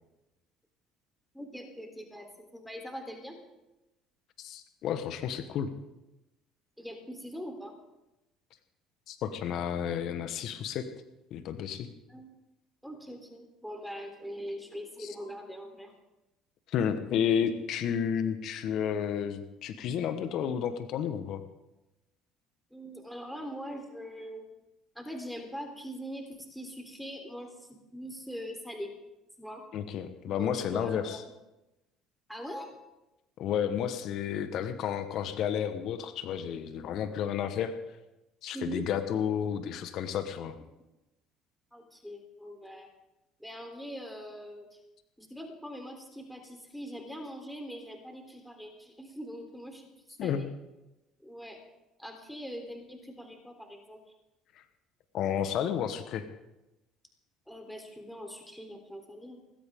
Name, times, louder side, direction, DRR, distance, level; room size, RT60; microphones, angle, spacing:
voice 1, 1.3-3.4 6.8-7.7 12.1-12.4 12.8-15.9 22.7-24.5 25.0-28.9 29.4-29.6 30.4-31.3 32.3-32.7 38.5-38.9 41.7-42.9 43.4-44.8 45.2-49.8 50.2-50.5 51.2-51.6 52.0-54.0 57.5-59.4, equal, ahead, 3 dB, 3.6 m, -42 dB
voice 2, 4.4-5.7 9.1-10.9 11.3-11.9 15.0-15.1 16.7-21.4 29.7-31.2 33.4-37.7 38.4-40.5 50.2-50.5 54.5-54.6 55.1-56.2, left 8 dB, 60° left, 9 dB, 1.3 m, -31 dB
19.0 x 16.5 x 3.8 m, 0.97 s
hypercardioid pair, 70°, 0 cm